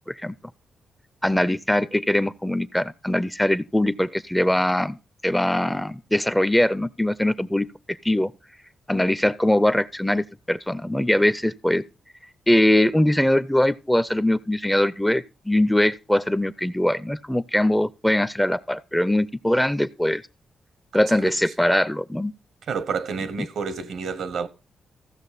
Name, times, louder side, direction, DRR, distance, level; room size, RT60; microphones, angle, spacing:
voice 1, 1.2-5.0 5.2-8.3 8.9-11.8 12.5-20.2 20.9-22.3, left 1 dB, 5° left, 0.5 m, -22 dB
voice 2, 22.7-24.5, right 5 dB, 75° right, 0.9 m, -29 dB
15.0 x 6.3 x 4.1 m
cardioid pair, 75°, 0 cm